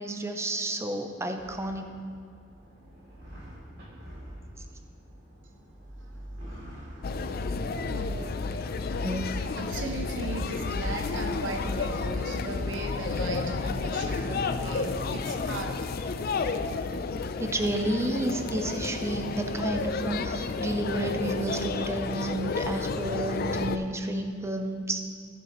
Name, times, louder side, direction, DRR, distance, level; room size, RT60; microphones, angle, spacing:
voice 1, 0.0-1.9 9.0-9.3 17.4-25.0, right 1 dB, 15° right, 5 dB, 0.6 m, -31 dB
sound 1, 1.4-18.7, equal, 60° right, 2.7 m, -46 dB
sound 2, 7.0-23.8, left 4 dB, 50° left, 0.4 m, -31 dB
voice 2, 7.6-8.9 9.6-15.8, right 2 dB, 75° right, 3 dB, 0.8 m, -38 dB
15.0 x 7.5 x 3.0 m, 2.4 s
head